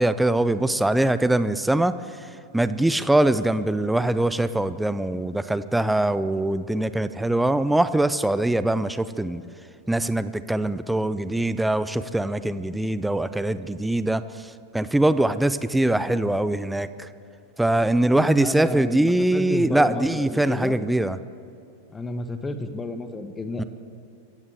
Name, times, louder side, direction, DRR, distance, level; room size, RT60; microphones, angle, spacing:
voice 1, 0.0-1.9 2.5-9.4 9.9-17.1 17.6-21.2 23.6-23.7, right 1 dB, 5° right, 14 dB, 0.5 m, -22 dB
voice 2, 18.0-20.8 21.9-23.6, left 2 dB, 15° left, 9 dB, 1.2 m, -31 dB
25.5 x 15.5 x 3.4 m, 2.6 s
figure-of-eight pair, 90°, 0 cm